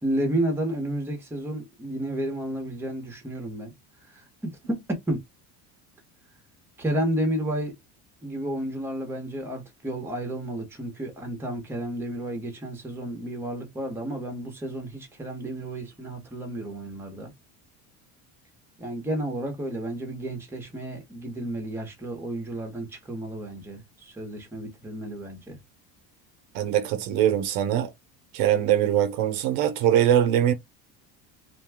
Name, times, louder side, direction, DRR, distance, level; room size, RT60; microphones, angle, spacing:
voice 1, 0.0-3.7 4.1-5.2 6.8-7.7 8.2-17.3 18.8-25.6, right 1 dB, 5° right, 0.8 m, -31 dB
voice 2, 26.5-27.9 28.3-30.5, right 11 dB, 70° right, 0.7 m, -22 dB
2.6 x 2.2 x 3.3 m
cardioid pair, 160°, 36 cm